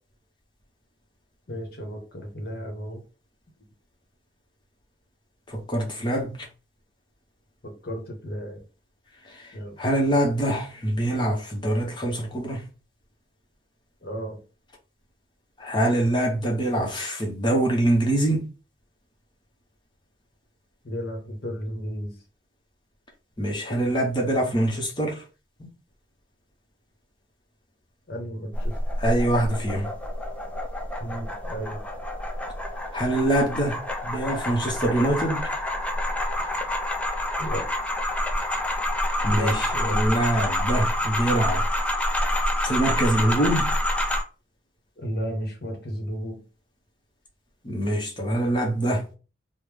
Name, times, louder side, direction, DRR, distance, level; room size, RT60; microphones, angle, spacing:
voice 1, 1.5-3.0 7.6-8.6 9.5-9.8 14.0-14.4 20.8-22.2 28.1-28.8 31.0-31.8 37.4-37.7 39.3-40.0 45.0-46.4, equal, 55° left, 0.9 m, -33 dB
voice 2, 5.5-6.5 9.8-12.6 15.6-18.4 23.4-25.2 29.0-29.9 32.9-35.4 39.2-39.6 39.8-41.6 42.6-43.7 47.6-49.1, right 1 dB, 25° left, 0.7 m, -24 dB
sound 1, 28.5-44.2, left 1 dB, 5° left, 0.3 m, -27 dB
3.5 x 2.1 x 3.2 m
head